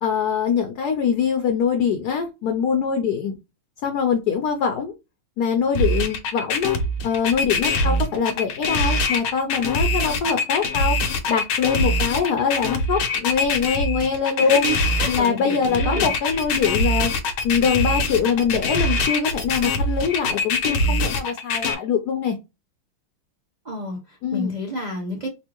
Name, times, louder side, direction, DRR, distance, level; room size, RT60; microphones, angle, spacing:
voice 1, 0.0-3.4 3.8-4.9 5.4-6.8 7.0-11.0 11.3-14.6 15.1-17.2 17.4-22.3 24.2-24.5, left 6 dB, 65° left, 1.1 m, -23 dB
sound 1, 5.8-21.8, left 2 dB, 90° left, 1.6 m, -23 dB
voice 2, 14.4-16.4 23.6-25.3, right 1 dB, 65° right, 0.4 m, -30 dB
4.4 x 2.5 x 2.9 m
omnidirectional pair, 2.2 m